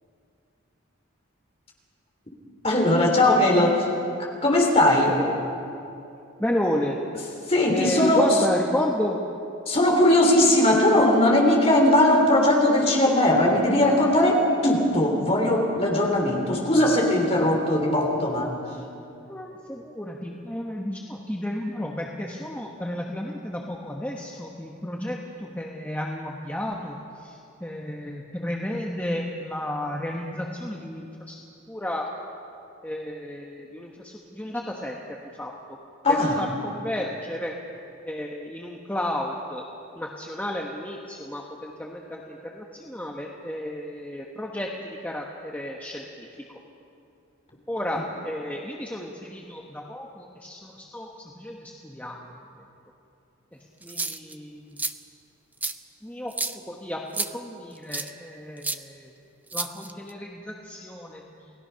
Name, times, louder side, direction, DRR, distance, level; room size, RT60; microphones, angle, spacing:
voice 1, 2.6-3.9 4.2-5.1 7.5-8.3 9.7-18.5 36.0-36.4, left 1 dB, 30° left, 0 dB, 3.3 m, -19 dB
voice 2, 6.4-7.0 7.7-9.2 19.3-31.4 31.7-32.1 32.8-35.0 35.3-35.5 36.1-37.5 38.1-39.6 39.9-46.4 47.7-52.6 53.8-54.8 56.0-59.1 59.5-61.5, left 1 dB, 10° left, -1 dB, 1.2 m, -32 dB
sound 1, 53.8-54.3 54.8-54.9 55.6-55.7 56.3-56.6 57.1-57.3 57.9-58.1 58.6-58.8 59.5-60.1, right 3 dB, 10° right, 0.4 m, -30 dB
29.0 x 18.0 x 5.8 m, 2.7 s
head